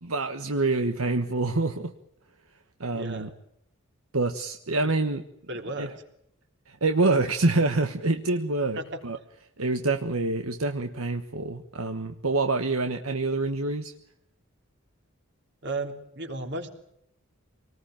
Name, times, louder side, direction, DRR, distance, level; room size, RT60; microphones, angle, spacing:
voice 1, 0.0-1.9 2.8-3.3 4.1-5.2 5.8-5.9 6.7-9.2 9.6-13.9, right 3 dB, 80° right, 6 dB, 1.4 m, -26 dB
voice 2, 2.9-3.3 4.8-4.9 5.5-5.9 8.8-9.0 15.6-16.7, right 2 dB, 55° right, 5 dB, 3.5 m, -34 dB
25.5 x 19.5 x 9.0 m, 0.74 s
head